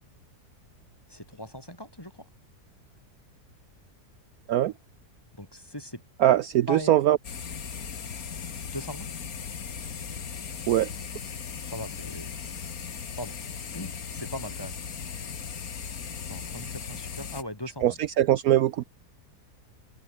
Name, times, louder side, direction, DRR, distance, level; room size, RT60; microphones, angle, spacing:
voice 1, 1.1-2.3 5.4-6.0 6.7-6.9 8.7-9.1 11.5-12.3 13.2-13.4 13.7-14.8 16.3-18.0, left 1 dB, 15° left, 5.0 m, -39 dB
voice 2, 6.2-7.2 10.7-10.9 17.8-18.8, right 12 dB, 70° right, 1.1 m, -21 dB
sound 1, 7.2-17.4, left 6 dB, 60° left, 2.1 m, -37 dB
omnidirectional pair, 1.7 m